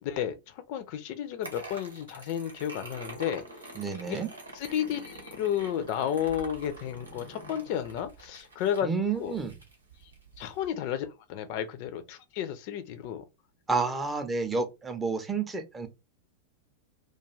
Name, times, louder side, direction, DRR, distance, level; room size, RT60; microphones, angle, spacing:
voice 1, 0.0-3.4 4.0-4.2 4.5-8.9 9.2-9.4 10.4-13.2, left 9 dB, 45° left, 0.4 m, -32 dB
sound 1, 1.4-10.7, right 2 dB, 75° right, 0.9 m, -46 dB
voice 2, 3.8-4.3 8.8-9.5 13.7-15.9, right 4 dB, 15° right, 0.5 m, -30 dB
2.3 x 2.3 x 3.0 m
figure-of-eight pair, 90°, 0 cm